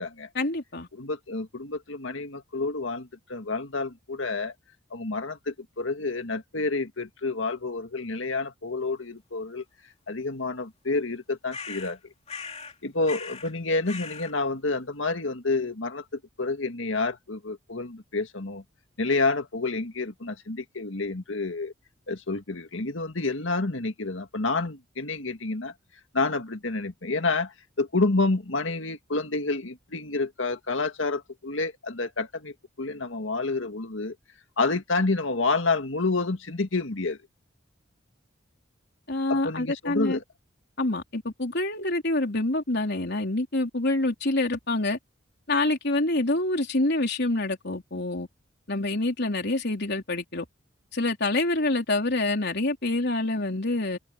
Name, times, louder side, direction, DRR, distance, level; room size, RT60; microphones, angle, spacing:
voice 1, 0.3-0.9 39.1-40.2 40.8-45.0 45.5-48.3 48.7-50.5 50.9-54.0, left 2 dB, 60° left, 4.0 m, -26 dB
voice 2, 0.9-4.5 4.9-9.6 10.1-12.0 12.8-18.6 19.0-21.7 22.1-25.7 26.1-34.2 34.6-37.2 39.3-40.2, left 3 dB, 75° left, 2.0 m, -29 dB
sound 1, 11.5-12.0 12.3-12.8 13.0-13.5 13.9-14.3, left 5 dB, 35° left, 2.7 m, -39 dB
head